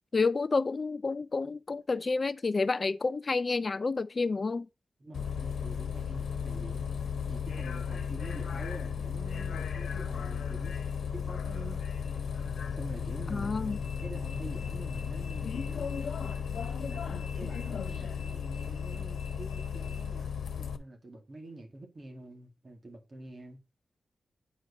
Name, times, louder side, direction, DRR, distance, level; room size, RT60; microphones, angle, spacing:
voice 1, 0.1-4.7 13.3-13.8, left 4 dB, 35° left, 0.3 m, -29 dB
voice 2, 5.0-6.9 7.3-10.8 11.1-11.8 12.7-13.5 14.0-16.0 16.8-23.6, right 2 dB, 35° right, 2.2 m, -46 dB
Bus, 5.1-20.8, left 7 dB, 85° left, 1.1 m, -35 dB
9.4 x 4.6 x 4.1 m
wide cardioid pair, 140°, 0 cm